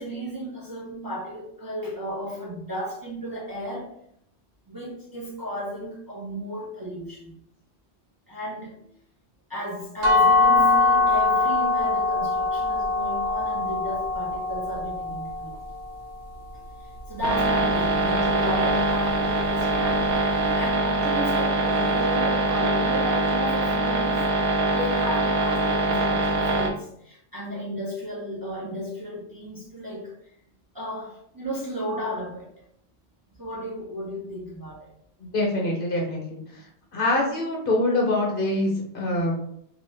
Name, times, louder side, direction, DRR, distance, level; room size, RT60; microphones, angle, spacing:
voice 1, 0.0-3.9 4.7-7.3 8.3-8.8 9.5-15.6 17.1-24.3 24.7-30.1 30.7-32.5 33.4-34.9, equal, 25° right, -6 dB, 0.6 m, -34 dB
sound 1, 10.0-15.8, left 3 dB, 60° right, 1.1 m, -22 dB
sound 2, 17.2-26.7, right 2 dB, 85° right, 0.9 m, -23 dB
voice 2, 35.2-36.4 36.9-39.3, left 1 dB, 55° left, -1 dB, 0.9 m, -24 dB
2.7 x 2.5 x 3.2 m, 0.71 s
omnidirectional pair, 1.1 m